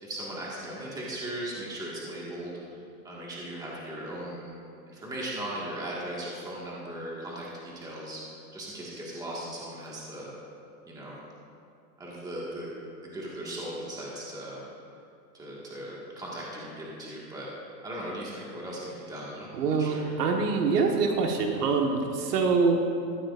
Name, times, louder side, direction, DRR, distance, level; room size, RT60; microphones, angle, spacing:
voice 1, 0.0-2.6 3.0-4.5 4.9-8.2 8.5-10.3 10.9-11.2 12.0-12.7 13.1-14.6 15.3-17.5 17.8-20.0, right 1 dB, 10° right, -5 dB, 1.8 m, -38 dB
voice 2, 19.5-22.8, right 4 dB, 75° right, 2 dB, 1.5 m, -25 dB
15.0 x 14.5 x 2.5 m, 2.6 s
supercardioid pair, 155°, 48 cm